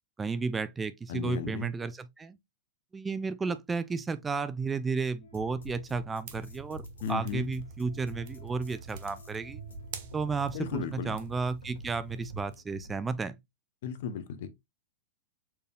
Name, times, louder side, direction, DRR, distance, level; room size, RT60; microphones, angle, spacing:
voice 1, 0.2-2.4 2.9-9.6 10.1-13.4, right 4 dB, 15° right, 0.4 m, -33 dB
voice 2, 1.1-1.7 7.0-7.5 10.5-11.1 13.8-14.5, left 7 dB, 60° left, 0.8 m, -35 dB
sound 1, 5.2-13.2, left 1 dB, 80° left, 1.4 m, -48 dB
sound 2, 6.3-12.5, right 8 dB, 55° right, 0.7 m, -47 dB
4.4 x 3.3 x 2.3 m
hypercardioid pair, 105°, 0 cm